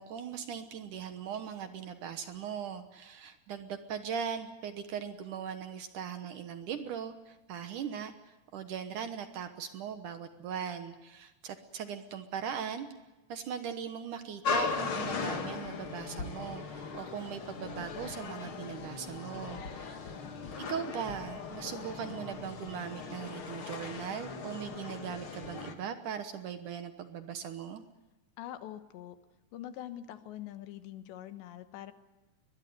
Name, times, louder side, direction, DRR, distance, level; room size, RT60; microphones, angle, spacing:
voice 1, 0.0-12.9 13.3-20.1 20.6-27.8, right 8 dB, 65° right, 8 dB, 2.1 m, -39 dB
sound 1, 14.4-25.7, left 5 dB, 45° left, 1.7 m, -38 dB
voice 2, 19.3-19.9 28.4-29.2 29.5-31.9, left 12 dB, 85° left, 9 dB, 3.6 m, -44 dB
22.5 x 21.0 x 9.4 m, 1.0 s
omnidirectional pair, 4.9 m